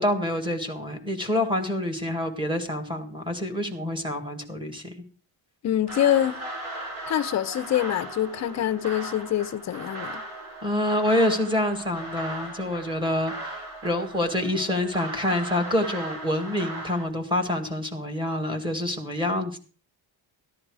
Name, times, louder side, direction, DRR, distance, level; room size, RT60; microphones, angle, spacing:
voice 1, 0.0-4.9 10.6-19.6, left 1 dB, 10° right, 1.8 m, -27 dB
voice 2, 5.6-6.4 7.1-10.2, left 11 dB, 35° left, 0.6 m, -25 dB
sound 1, 5.9-17.0, right 1 dB, 80° right, 6.6 m, -38 dB
14.5 x 10.5 x 4.8 m
cardioid pair, 175°, 46 cm